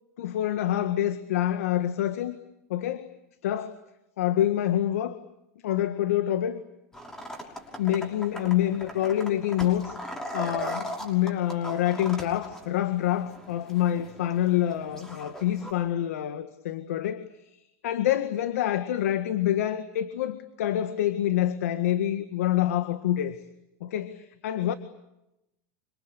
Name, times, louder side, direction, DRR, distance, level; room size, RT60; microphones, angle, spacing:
voice 1, 0.2-2.4 2.7-3.1 3.4-3.8 4.2-5.2 5.6-6.6 7.8-10.0 10.3-17.3 17.8-23.4 23.8-24.7, left 12 dB, 85° left, 10 dB, 1.9 m, -26 dB
sound 1, 6.9-15.7, equal, 5° left, 5.8 m, -39 dB
26.5 x 26.0 x 8.4 m, 0.87 s
supercardioid pair, 145°, 8 cm